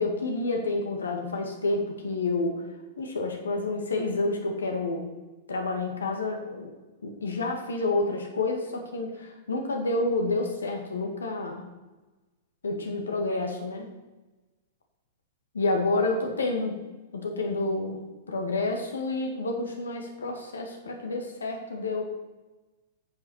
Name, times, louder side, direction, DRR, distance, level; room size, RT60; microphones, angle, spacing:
voice 1, 0.0-2.6 3.0-5.1 5.5-6.7 7.0-11.7 12.6-13.9 15.5-18.0 18.3-22.0, left 2 dB, 90° left, 3 dB, 1.9 m, -29 dB
9.2 x 6.0 x 6.4 m, 1.2 s
hypercardioid pair, 115°, 0 cm